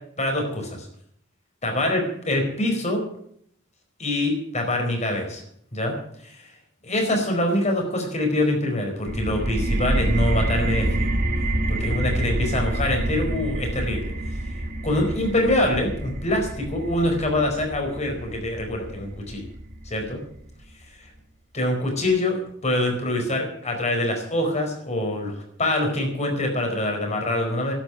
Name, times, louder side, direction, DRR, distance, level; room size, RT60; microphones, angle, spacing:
voice 1, 0.2-0.9 1.6-3.0 4.0-5.4 5.7-5.9 6.2-6.4 6.8-11.1 11.7-14.1 14.8-19.5 19.8-20.2 21.5-27.7, left 1 dB, 35° left, 2 dB, 4.6 m, -25 dB
sound 1, 9.1-20.5, right 1 dB, 45° right, 1.7 m, -27 dB
12.0 x 9.3 x 9.5 m, 0.66 s
head